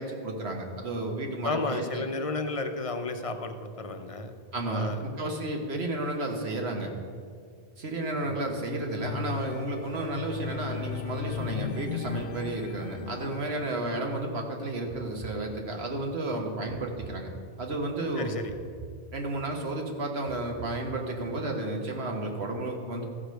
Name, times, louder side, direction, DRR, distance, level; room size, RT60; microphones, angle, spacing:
voice 1, 0.0-2.0 4.5-6.9 7.8-17.3 17.6-18.3 19.1-23.0, right 2 dB, 85° right, 2 dB, 1.6 m, -32 dB
voice 2, 1.4-4.3 4.7-5.0 8.3-8.5 18.2-18.5, left 3 dB, 40° left, 7 dB, 0.7 m, -32 dB
sound 1, 9.0-14.3 14.8-15.0, left 9 dB, 80° left, 0.9 m, -37 dB
sound 2, 14.9-16.0 16.7-17.8 18.5-19.6 20.3-21.4, right 6 dB, 50° right, 0.6 m, -46 dB
14.5 x 5.0 x 6.3 m, 2.1 s
omnidirectional pair, 1.0 m